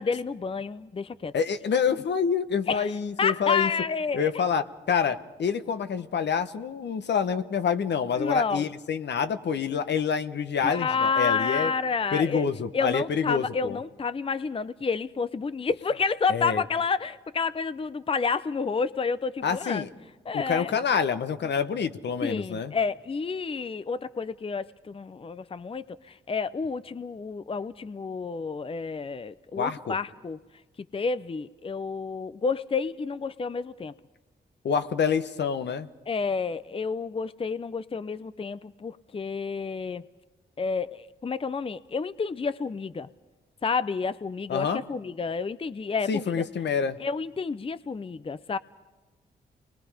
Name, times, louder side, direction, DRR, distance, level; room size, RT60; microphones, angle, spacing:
voice 1, 0.0-1.3 2.7-4.4 8.2-8.7 10.6-12.5 12.7-19.9 20.3-20.7 22.2-30.4 30.9-33.9 36.1-40.0 40.6-43.1 43.6-46.3 47.0-48.6, left 5 dB, 30° left, 15 dB, 0.6 m, -30 dB
voice 2, 1.3-3.7 4.1-11.7 12.1-13.8 16.3-16.6 19.4-19.9 20.3-22.7 29.6-30.0 34.6-35.9 44.5-44.8 46.1-47.0, left 6 dB, 70° left, 10 dB, 1.2 m, -27 dB
29.0 x 21.5 x 5.0 m, 1.2 s
cardioid pair, 70°, 18 cm